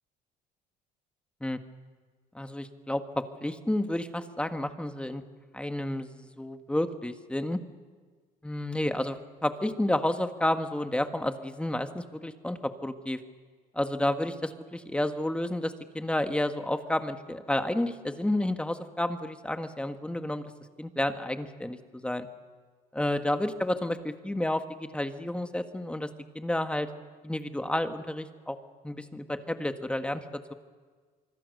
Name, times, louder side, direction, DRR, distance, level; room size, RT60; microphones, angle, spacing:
voice 1, 2.3-5.2 5.5-7.6 8.4-13.2 13.7-20.5 20.8-22.3 22.9-26.1 26.3-26.9 27.2-28.6 28.8-30.2, left 1 dB, 5° left, 8 dB, 1.6 m, -31 dB
25.5 x 24.5 x 6.7 m, 1.5 s
cardioid pair, 110°, 17 cm